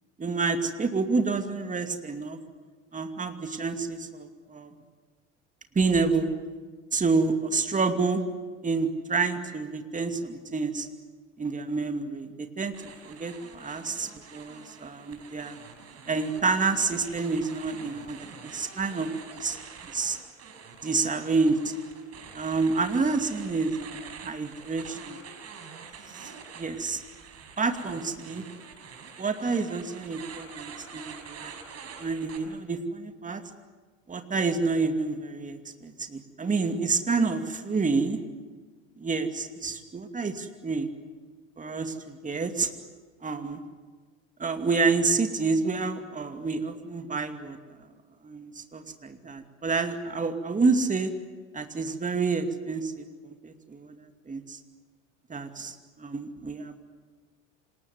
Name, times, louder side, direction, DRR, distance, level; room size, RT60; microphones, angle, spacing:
voice 1, 0.2-2.4 2.9-4.7 5.7-6.3 6.9-8.2 8.6-10.9 11.4-12.7 13.0-15.6 16.1-19.1 19.4-19.6 19.8-20.2 20.8-21.7 22.3-25.2 26.1-27.0 27.6-28.4 29.2-31.6 32.0-33.4 34.1-38.2 39.0-40.9 41.6-42.7 43.2-43.6 44.4-47.8 48.2-51.1 51.5-54.6 55.3-56.8, right 4 dB, 20° right, 6 dB, 2.5 m, -28 dB
sound 1, 12.7-32.4, right 6 dB, 40° right, 5.4 m, -46 dB
27.0 x 20.0 x 9.7 m, 1.4 s
hypercardioid pair, 75°, 39 cm